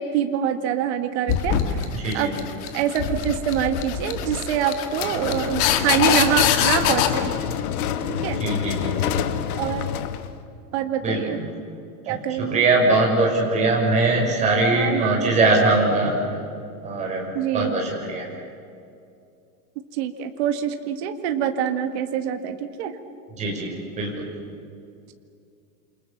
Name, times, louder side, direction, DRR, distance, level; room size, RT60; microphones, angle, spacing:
voice 1, 0.0-1.8 2.1-2.4 2.7-7.3 8.2-8.4 9.2-9.3 9.6-9.9 10.7-11.4 12.1-12.7 14.7-15.3 17.3-17.8 19.9-22.9, right 9 dB, 45° right, 7 dB, 1.9 m, -25 dB
sound 1, 1.3-7.1, left 9 dB, 30° left, 1.8 m, -24 dB
voice 2, 1.9-2.3 8.4-9.0 11.0-11.5 12.1-16.1 16.8-17.3 17.5-18.3 23.4-23.7 24.0-24.2, right 2 dB, 15° right, -2 dB, 5.8 m, -21 dB
sound 2, 4.9-10.4, left 9 dB, 65° left, 1.8 m, -27 dB
28.5 x 27.5 x 7.2 m, 2.5 s
supercardioid pair, 175°, 48 cm